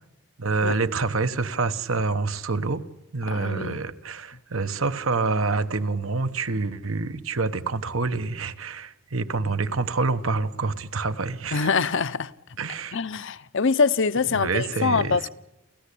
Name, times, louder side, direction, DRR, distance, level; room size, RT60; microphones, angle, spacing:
voice 1, 0.4-2.8 3.1-11.7 12.6-13.0 14.3-15.3, right 3 dB, 80° right, 1.3 m, -27 dB
voice 2, 3.3-3.8 11.5-12.3 12.9-15.3, left 5 dB, 65° left, 0.8 m, -24 dB
29.0 x 14.5 x 8.5 m
head